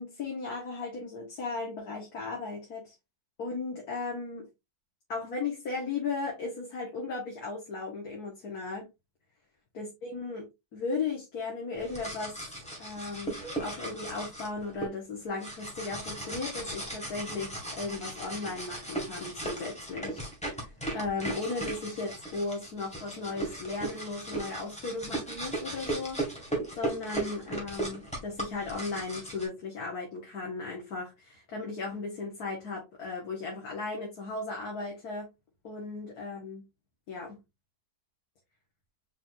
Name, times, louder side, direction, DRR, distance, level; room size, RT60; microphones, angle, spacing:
voice 1, 0.0-2.9 3.4-4.5 5.1-8.9 9.7-12.4 12.8-26.2 26.8-35.3 35.6-36.6 37.1-37.4, left 4 dB, 75° left, 1.8 m, -36 dB
sound 1, 11.8-14.9 15.4-29.5, right 2 dB, 5° left, 1.7 m, -37 dB
4.4 x 4.3 x 2.5 m
omnidirectional pair, 1.6 m